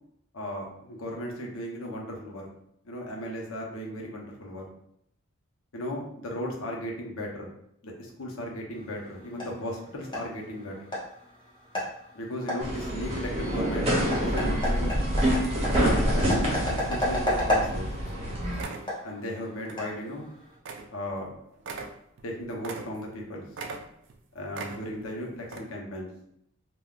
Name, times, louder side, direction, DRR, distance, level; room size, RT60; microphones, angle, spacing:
voice 1, 0.3-2.5 2.8-4.7 5.7-7.5 7.8-10.8 12.1-15.0 15.6-17.9 19.0-20.3 20.9-21.4 22.2-23.5 24.3-26.1, equal, 85° left, -1 dB, 0.7 m, -36 dB
sound 1, 8.7-20.6, left 1 dB, 25° left, 0.8 m, -33 dB
sound 2, 12.6-18.6, equal, 30° right, 0.7 m, -27 dB
sound 3, 17.7-17.8 18.1-18.2 18.5-18.9 19.6-19.9 20.2-20.3 20.7-20.9 21.2-21.3 21.6-23.2 23.5-24.2 24.5-25.1 25.4-25.6, right 4 dB, 60° right, 0.3 m, -40 dB
3.5 x 2.2 x 2.3 m, 0.74 s
head